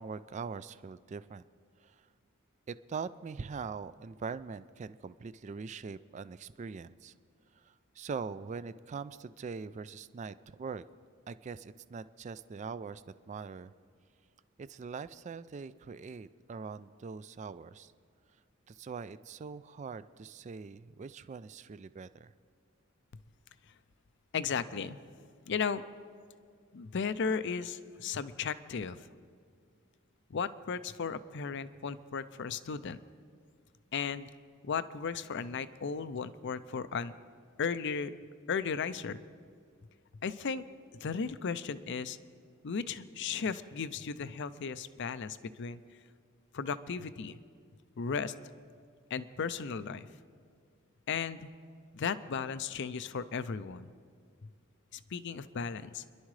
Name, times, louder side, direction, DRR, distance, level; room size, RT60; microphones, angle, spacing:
voice 1, 0.0-1.4 1.8-2.1 2.7-7.1 7.5-10.8 11.3-13.7 14.6-17.9 18.7-22.3, right 5 dB, 35° right, 15 dB, 0.3 m, -42 dB
voice 2, 24.3-25.0 25.5-25.8 26.7-29.1 30.3-33.0 33.9-34.3 34.6-37.1 37.6-38.1 38.5-39.2 40.2-40.6 41.0-42.2 42.6-45.8 46.5-47.4 48.0-48.3 49.1-50.1 51.1-51.5 51.9-53.9 54.9-56.0, left 5 dB, 60° left, 13 dB, 0.5 m, -35 dB
29.0 x 11.5 x 3.2 m, 2.1 s
head